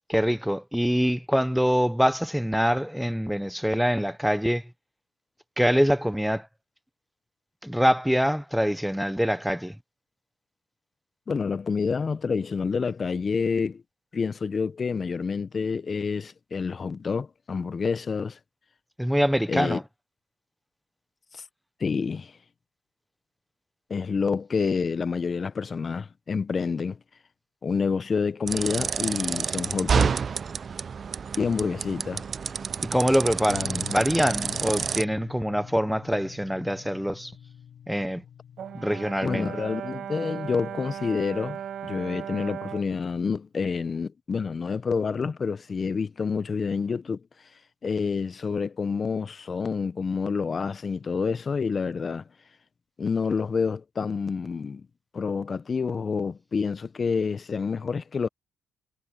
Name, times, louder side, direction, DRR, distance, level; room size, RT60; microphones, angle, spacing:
voice 1, 0.1-4.6 5.6-6.5 7.6-9.7 19.0-19.8 32.9-37.3 37.9-38.2 38.7-39.5, equal, ahead, 0.7 m, -24 dB
voice 2, 11.3-13.8 14.1-18.4 19.5-19.8 21.3-21.4 21.8-22.3 23.9-27.0 27.6-30.1 31.4-32.2 39.2-47.2 47.8-52.2 53.0-54.8 55.1-58.3, left 5 dB, 40° left, 0.7 m, -28 dB
sound 1, 28.5-35.0, right 6 dB, 45° right, 0.4 m, -29 dB
sound 2, 33.5-42.4, left 8 dB, 60° left, 3.7 m, -44 dB
Brass instrument, 38.6-42.9, right 9 dB, 65° right, 1.4 m, -37 dB
cardioid pair, 90°, 0 cm